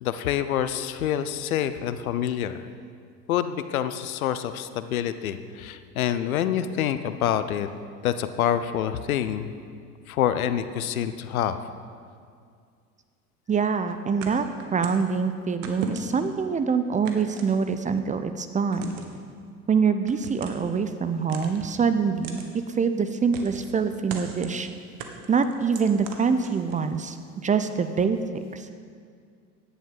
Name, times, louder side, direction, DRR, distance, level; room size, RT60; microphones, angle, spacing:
voice 1, 0.0-2.6 3.3-7.7 8.0-9.6 10.1-11.6, left 10 dB, 65° left, 11 dB, 0.9 m, -27 dB
voice 2, 13.5-14.5 14.7-18.9 19.7-22.4 22.7-24.7 25.3-28.2 28.5-28.7, right 5 dB, 15° right, 10 dB, 0.6 m, -25 dB
sound 1, 14.2-15.1 15.6-16.3 17.0-18.0 18.7-19.2 20.1-20.7 21.3-21.8 22.2-22.5 23.3-23.7 24.1-24.6 25.0-26.9, right 5 dB, 50° right, 1.8 m, -38 dB
17.0 x 10.5 x 5.5 m, 2.2 s
figure-of-eight pair, 75°, 45 cm